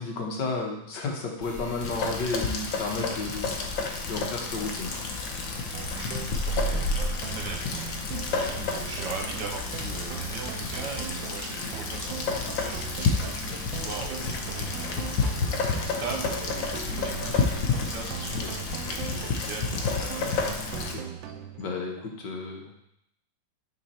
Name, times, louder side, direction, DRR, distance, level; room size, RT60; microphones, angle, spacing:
voice 1, 0.0-3.6 4.1-5.1 18.3-18.5 20.8-21.0 21.6-22.7, left 3 dB, 70° left, 1 dB, 1.8 m, -33 dB
sound 1, 1.4-20.8, equal, 50° left, 1.6 m, -38 dB
Rain, 1.8-21.0, left 4 dB, 85° left, 1.6 m, -31 dB
sound 2, 5.7-21.7, right 10 dB, 85° right, 1.3 m, -40 dB
voice 2, 7.3-7.6 8.3-20.4, right 4 dB, 65° right, 2 dB, 1.5 m, -40 dB
9.2 x 3.9 x 4.2 m, 0.79 s
omnidirectional pair, 2.0 m